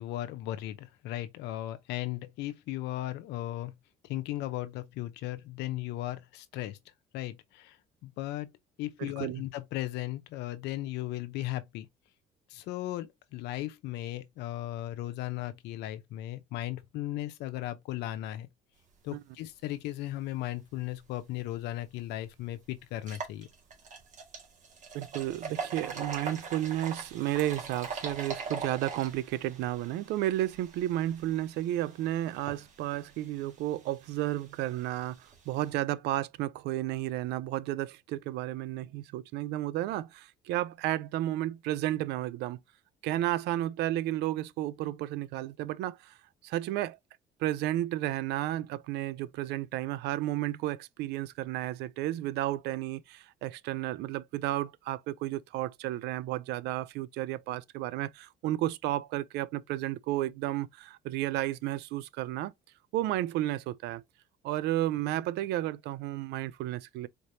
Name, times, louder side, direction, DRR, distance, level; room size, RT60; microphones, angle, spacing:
voice 1, 0.0-3.7 4.0-6.8 7.1-7.8 8.0-8.5 8.8-11.9 12.5-18.5 19.0-23.5, left 15 dB, 85° left, 0.7 m, -36 dB
voice 2, 9.0-9.4 19.1-19.2 24.9-42.6 43.0-46.2 46.4-47.0 47.4-62.5 62.9-64.0 64.4-67.1, right 14 dB, 85° right, 0.4 m, -32 dB
sound 1, 21.7-21.8 22.2-22.3 22.9-35.7, right 5 dB, 45° right, 1.7 m, -42 dB
4.3 x 3.3 x 2.7 m
cardioid pair, 110°, 17 cm